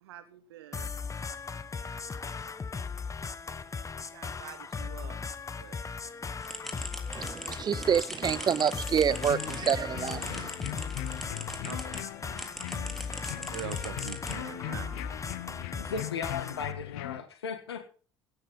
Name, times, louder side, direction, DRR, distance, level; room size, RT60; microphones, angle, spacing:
voice 1, 0.0-0.9 3.9-5.2 5.6-5.8 11.6-12.1 13.1-15.1 15.9-16.0, right 11 dB, 75° right, 1.2 m, -44 dB
sound 1, 0.7-16.7, left 5 dB, 25° left, 1.2 m, -38 dB
sound 2, 6.4-12.0 12.4-14.7, equal, ahead, 3.4 m, -42 dB
voice 2, 7.1-10.5, right 8 dB, 35° right, 0.8 m, -28 dB
sound 3, 9.1-17.2, left 17 dB, 65° left, 0.9 m, -40 dB
voice 3, 15.8-17.9, left 6 dB, 80° left, 1.6 m, -36 dB
17.5 x 9.9 x 4.0 m
figure-of-eight pair, 60°, 13 cm